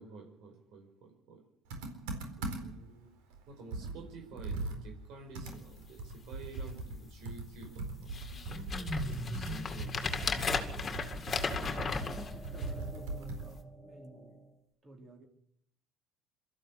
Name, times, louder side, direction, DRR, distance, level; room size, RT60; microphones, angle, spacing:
voice 1, 0.0-1.4 2.4-3.1 3.5-8.1 8.5-10.6 11.0-11.4, right 3 dB, 65° right, 3 dB, 5.1 m, -51 dB
Computer keyboard, 1.7-2.9 3.3-3.4 3.7-13.6, right 3 dB, 85° right, 4.3 m, -40 dB
sound 1, 5.4-5.6 6.1-6.2 6.4-6.9 7.5-7.6 8.1-12.9 13.5-13.6, left 5 dB, 30° left, 2.3 m, -36 dB
sound 2, 8.2-14.5, equal, 10° right, 2.6 m, -44 dB
voice 2, 11.9-14.4 14.8-15.3, right 3 dB, 30° right, 1 dB, 4.1 m, -53 dB
22.5 x 13.5 x 8.4 m, 0.75 s
supercardioid pair, 115°, 0 cm